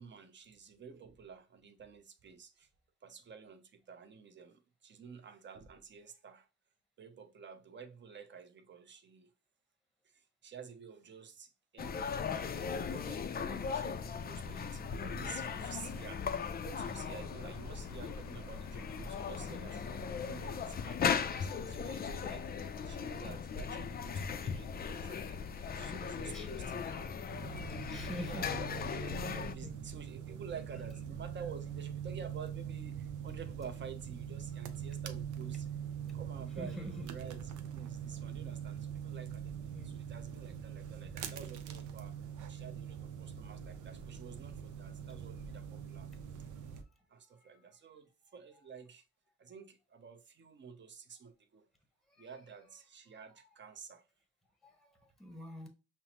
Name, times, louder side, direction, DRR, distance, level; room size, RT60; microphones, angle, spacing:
voice 1, 0.0-2.7 3.0-6.5 7.0-9.3 10.0-16.3 16.6-27.2 27.7-27.8 28.2-28.8 29.3-35.7 36.1-46.1 47.1-49.0 49.4-51.7 52.2-54.1, right 6 dB, 40° right, 0.7 m, -51 dB
sound 1, 11.8-29.5, left 6 dB, 30° left, 0.4 m, -38 dB
sound 2, 15.5-20.9, left 7 dB, 80° left, 0.8 m, -56 dB
sound 3, 27.3-46.8, right 8 dB, 85° right, 0.6 m, -43 dB
voice 2, 27.5-28.5 29.0-29.1 29.6-29.7 36.6-37.1 39.7-39.9 47.2-47.6 52.1-52.3 53.4-53.5 54.6-55.7, left 1 dB, ahead, 0.9 m, -46 dB
5.5 x 2.0 x 2.9 m
cardioid pair, 90°, 30 cm